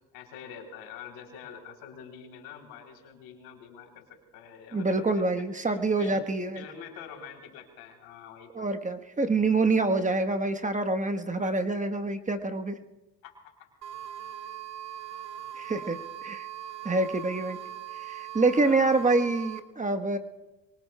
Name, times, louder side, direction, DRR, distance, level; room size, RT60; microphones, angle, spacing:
voice 1, 0.1-5.2 5.6-6.2 6.5-8.7 13.2-13.5 18.6-19.3, left 7 dB, 85° left, 2 dB, 3.4 m, -46 dB
voice 2, 4.7-6.6 8.5-12.8 15.5-16.5 16.8-17.6 18.0-20.2, right 3 dB, 20° right, 7 dB, 1.2 m, -26 dB
sound 1, 13.8-19.6, right 11 dB, 45° right, 1.0 m, -40 dB
24.0 x 23.5 x 2.2 m, 1.0 s
supercardioid pair, 80°, 37 cm